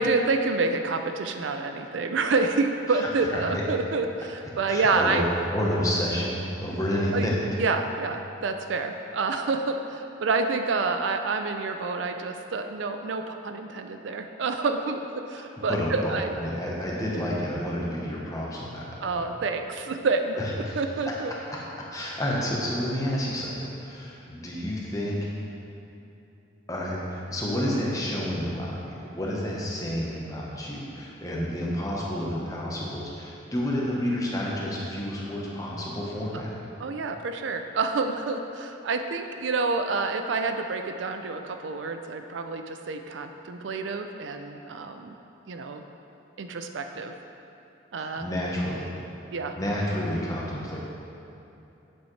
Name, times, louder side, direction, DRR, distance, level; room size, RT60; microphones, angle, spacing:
voice 1, 0.0-5.3 7.1-7.3 7.6-15.0 15.3-16.3 19.0-20.4 20.8-21.3 36.3-36.4 36.8-45.2 45.5-45.8 46.4-47.1 47.9-48.3 49.3-49.6, right 3 dB, 70° right, 6 dB, 0.4 m, -28 dB
voice 2, 2.9-3.3 4.7-5.2 5.5-7.6 15.4-19.3 20.4-20.9 21.9-23.6 23.8-25.2 26.7-36.6 47.9-48.9 49.6-50.8, equal, 15° left, -4 dB, 1.0 m, -30 dB
8.3 x 7.1 x 3.2 m, 2.9 s
head